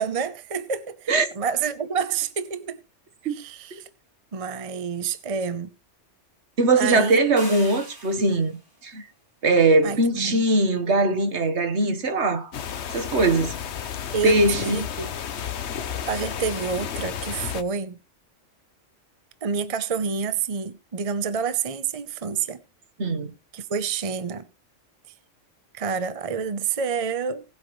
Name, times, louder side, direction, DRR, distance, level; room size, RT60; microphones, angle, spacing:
voice 1, 0.0-2.8 3.2-3.9 4.3-5.7 6.8-7.2 9.8-10.4 14.1-15.2 16.1-18.0 19.4-22.6 23.5-24.5 25.7-27.4, right 6 dB, 35° right, 0.8 m, -28 dB
voice 2, 6.6-8.5 8.8-9.0 9.4-12.5 12.9-13.6 14.2-14.8 23.0-23.3, right 2 dB, 65° right, 1.6 m, -21 dB
sound 1, 7.4-8.6, equal, 15° right, 3.6 m, -40 dB
sound 2, 12.5-17.6, left 8 dB, 65° left, 1.1 m, -32 dB
19.0 x 8.3 x 3.1 m
omnidirectional pair, 1.3 m